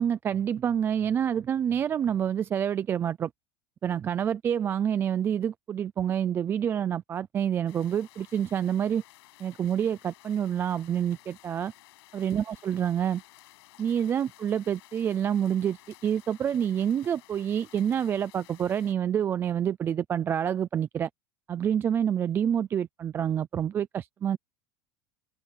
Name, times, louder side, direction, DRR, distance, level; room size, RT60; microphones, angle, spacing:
voice 1, 0.0-3.3 3.8-9.0 9.4-11.7 12.1-13.2 13.8-15.8 16.0-21.1 21.5-24.4, right 9 dB, 15° right, 0.3 m, -27 dB
sound 1, 7.7-18.9, left 18 dB, 80° left, 7.6 m, -55 dB
supercardioid pair, 165°, 13 cm